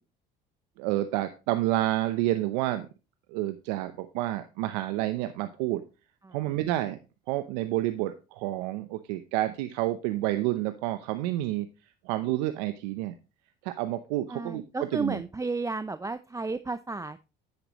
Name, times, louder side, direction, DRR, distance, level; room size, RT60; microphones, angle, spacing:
voice 1, 0.8-2.9 3.3-5.8 6.3-7.0 7.3-11.7 12.0-13.1 13.6-14.6 14.9-15.2, right 15 dB, 85° right, 10 dB, 0.8 m, -29 dB
voice 2, 14.3-17.3, right 3 dB, 15° right, 12 dB, 0.6 m, -33 dB
10.0 x 8.7 x 3.0 m, 0.30 s
supercardioid pair, 70°, 21 cm